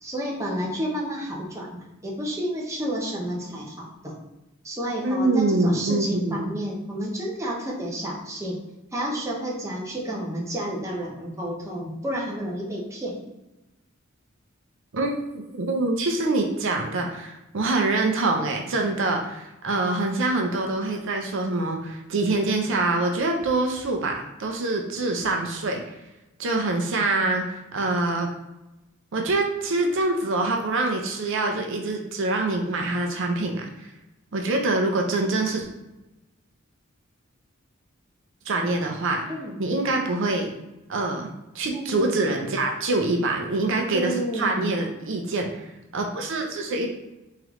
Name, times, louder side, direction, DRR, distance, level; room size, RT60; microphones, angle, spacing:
voice 1, 0.0-4.1 4.6-8.6 8.9-13.2 39.3-39.5 41.7-42.3 43.9-44.7, equal, 15° right, -3 dB, 0.8 m, -31 dB
voice 2, 5.0-6.4 14.9-25.8 26.4-28.3 29.1-33.7 34.3-35.7 38.5-39.3 39.6-40.5 40.9-41.3 41.5-46.9, right 2 dB, 65° right, 2 dB, 0.6 m, -25 dB
3.7 x 3.2 x 3.1 m, 0.99 s
head